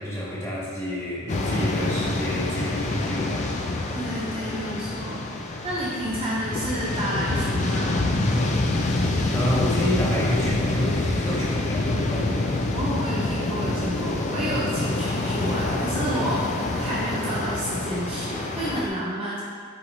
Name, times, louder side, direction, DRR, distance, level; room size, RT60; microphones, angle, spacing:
voice 1, 0.0-3.7 8.8-12.9 14.8-15.1, equal, 15° left, -9 dB, 1.1 m, -30 dB
sound 1, 1.3-18.9, left 2 dB, 35° left, 0.3 m, -26 dB
voice 2, 3.9-8.0 12.7-19.4, right 1 dB, 25° right, -7 dB, 0.5 m, -30 dB
5.7 x 3.3 x 2.6 m, 2.1 s
head